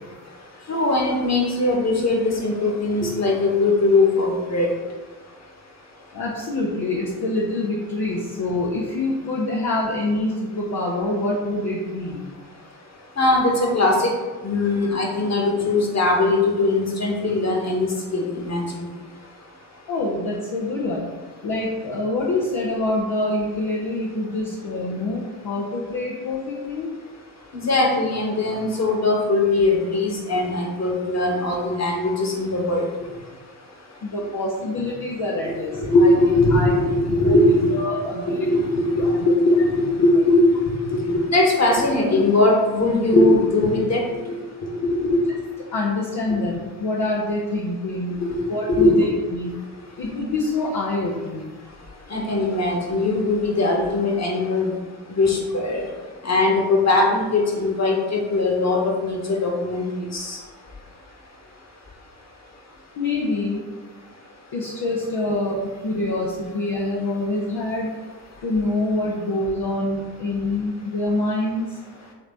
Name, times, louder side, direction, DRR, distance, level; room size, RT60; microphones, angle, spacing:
voice 1, 0.7-4.7 13.2-14.1 14.4-18.9 27.5-32.9 35.7-37.7 38.3-40.4 40.9-44.0 48.2-48.4 48.8-48.9 52.1-54.7 55.1-55.9 56.2-59.9 60.1-60.4, left 2 dB, 35° left, 0 dB, 1.9 m, -20 dB
voice 2, 6.1-12.2 19.9-21.1 21.4-26.9 34.0-36.1 36.5-36.7 37.2-37.4 37.7-38.5 39.0-39.2 45.7-48.2 48.5-49.5 50.0-51.5 63.0-63.6 64.5-67.9 68.4-71.8, left 2 dB, 50° left, -4 dB, 1.2 m, -25 dB
7.1 x 3.4 x 4.1 m, 1.3 s
hypercardioid pair, 45°, 47 cm